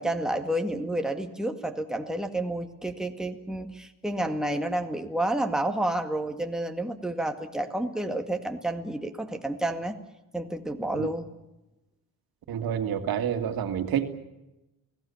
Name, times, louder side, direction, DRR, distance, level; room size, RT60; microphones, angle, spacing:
voice 1, 0.0-10.0 10.3-11.3, right 1 dB, ahead, 4 dB, 2.0 m, -30 dB
voice 2, 12.5-14.1, right 9 dB, 85° right, 7 dB, 2.2 m, -28 dB
29.0 x 18.0 x 7.1 m, 0.96 s
cardioid pair, 115°, 35 cm